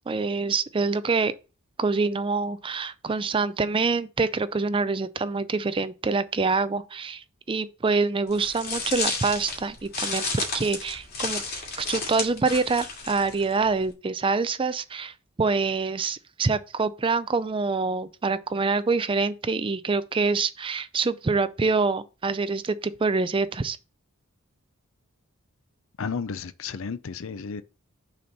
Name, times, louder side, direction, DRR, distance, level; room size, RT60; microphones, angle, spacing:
voice 1, 0.1-1.3 1.8-11.4 11.8-23.8, right 4 dB, 25° right, 0.4 m, -26 dB
sound 1, 8.3-13.9, left 3 dB, 45° left, 2.5 m, -32 dB
voice 2, 26.0-27.6, left 5 dB, 65° left, 0.5 m, -32 dB
6.4 x 4.3 x 5.3 m
head